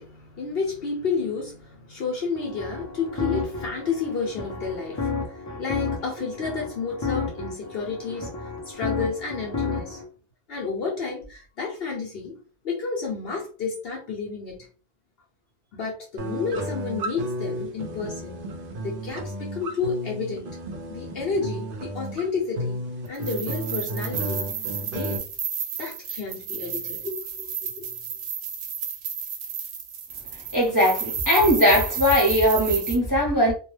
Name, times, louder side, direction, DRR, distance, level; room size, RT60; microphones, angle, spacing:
voice 1, 0.0-10.0 10.5-12.4 12.6-14.7 15.7-18.4 18.8-20.6 20.9-24.5 24.8-25.2 25.8-27.9, left 4 dB, 65° left, 0.9 m, -31 dB
sound 1, 2.3-10.0, left 4 dB, 25° left, 0.4 m, -32 dB
sound 2, 16.2-25.2, right 1 dB, 60° right, 0.7 m, -33 dB
sound 3, 23.1-33.0, right 7 dB, 90° right, 0.9 m, -32 dB
voice 2, 30.5-33.5, equal, 20° right, 0.7 m, -20 dB
2.2 x 2.2 x 3.1 m
omnidirectional pair, 1.1 m